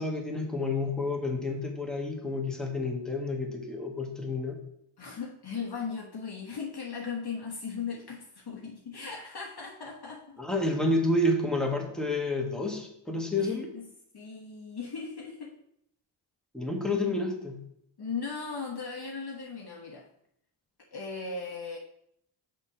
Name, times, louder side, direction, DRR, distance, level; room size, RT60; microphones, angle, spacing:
voice 1, 0.0-4.6 10.4-13.7 16.5-17.6, left 2 dB, ahead, 0 dB, 1.7 m, -29 dB
voice 2, 5.0-10.4 13.4-13.9 14.1-15.5 18.0-20.0 20.9-21.8, left 5 dB, 50° left, -2 dB, 1.2 m, -38 dB
5.9 x 4.4 x 5.8 m, 0.74 s
cardioid pair, 50°, 49 cm